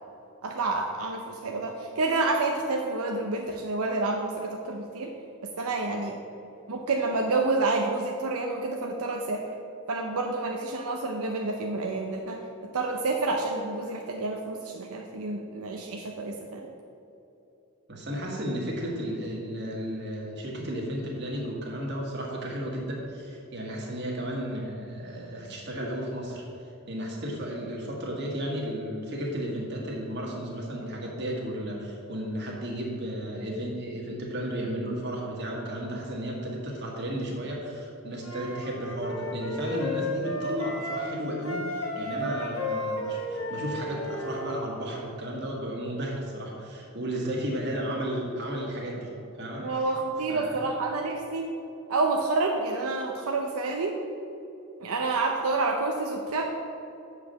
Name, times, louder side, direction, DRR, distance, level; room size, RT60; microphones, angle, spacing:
voice 1, 0.4-5.1 5.4-6.2 6.7-9.4 9.9-12.4 12.7-16.7 42.4-42.5 49.6-51.5 51.9-54.0 54.8-56.4, right 3 dB, 80° right, 1 dB, 0.6 m, -29 dB
voice 2, 17.9-26.4 26.9-49.1 49.4-49.9 50.3-50.6, equal, 50° right, -2 dB, 1.7 m, -33 dB
Wind instrument woodwind instrument, 38.2-41.1 41.4-44.6, left 1 dB, 65° left, 1.2 m, -33 dB
7.7 x 4.9 x 6.7 m, 2.8 s
head